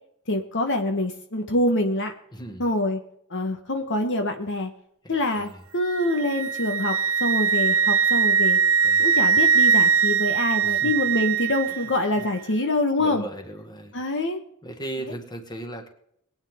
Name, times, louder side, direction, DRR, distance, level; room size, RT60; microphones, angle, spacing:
voice 1, 0.3-2.1 2.6-3.0 3.3-4.7 5.1-8.6 9.0-13.3 13.9-14.4, left 1 dB, 55° left, 5 dB, 1.3 m, -25 dB
voice 2, 2.3-2.6 5.0-5.6 8.8-9.2 10.6-10.9 11.7-11.9 12.2-12.3 13.0-13.9 14.6-15.9, right 1 dB, 20° left, 4 dB, 1.9 m, -37 dB
Wind instrument woodwind instrument, 5.9-11.8, right 6 dB, 65° right, 0.5 m, -21 dB
22.0 x 9.1 x 3.8 m, 0.71 s
head